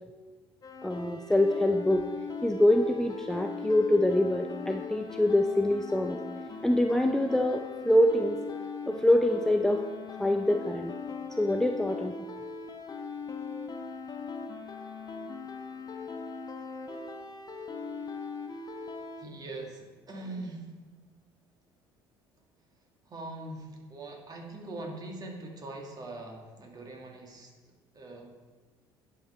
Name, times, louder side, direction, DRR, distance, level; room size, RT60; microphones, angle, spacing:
sound 1, 0.6-19.3, left 4 dB, 30° left, 1.0 m, -40 dB
voice 1, 0.8-2.0 2.4-6.2 6.6-8.4 8.9-9.8 10.2-10.9 11.4-12.1, left 1 dB, 5° left, 4 dB, 0.5 m, -25 dB
voice 2, 19.2-20.7 23.1-27.5 27.9-28.3, right 2 dB, 30° right, 1 dB, 1.8 m, -42 dB
9.9 x 5.7 x 4.3 m, 1.4 s
figure-of-eight pair, 55°, 13 cm